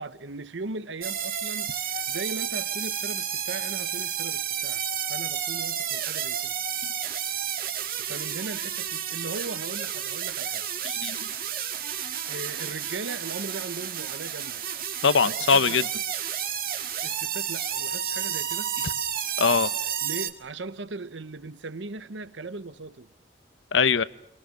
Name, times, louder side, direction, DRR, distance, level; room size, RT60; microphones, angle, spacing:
voice 1, 0.0-4.8 5.1-6.5 8.0-10.7 12.0-14.7 15.5-15.8 16.7-18.7 20.0-23.1, right 3 dB, 80° right, 1.0 m, -38 dB
sound 1, 1.0-20.3, right 9 dB, 50° right, 1.9 m, -31 dB
voice 2, 10.8-11.3 15.0-15.8 19.4-19.7 23.7-24.0, left 5 dB, 90° left, 0.9 m, -22 dB
27.0 x 23.0 x 6.4 m
head